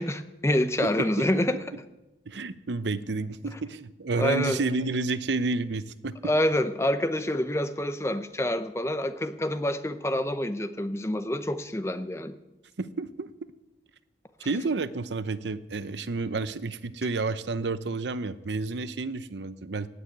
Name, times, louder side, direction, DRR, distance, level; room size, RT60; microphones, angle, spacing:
voice 1, 0.0-1.6 4.2-4.6 6.2-12.3, left 1 dB, 15° left, 10 dB, 0.6 m, -27 dB
voice 2, 2.3-6.2 12.8-13.3 14.4-19.9, right 3 dB, 85° right, 14 dB, 0.7 m, -30 dB
16.5 x 6.8 x 9.5 m, 1.0 s
head